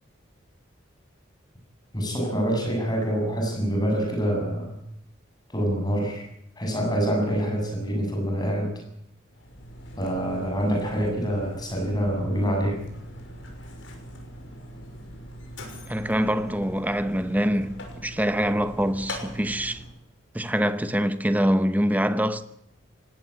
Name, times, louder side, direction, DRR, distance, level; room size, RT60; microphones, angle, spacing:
voice 1, 1.9-4.8 5.5-6.3 6.6-8.8 10.0-12.8, equal, 20° left, 7.5 m, -26 dB
Mechanisms, 9.3-20.0, equal, 70° left, 5.9 m, -41 dB
voice 2, 15.9-19.8 20.3-22.4, equal, 10° right, 0.9 m, -24 dB
19.5 x 17.0 x 8.6 m
head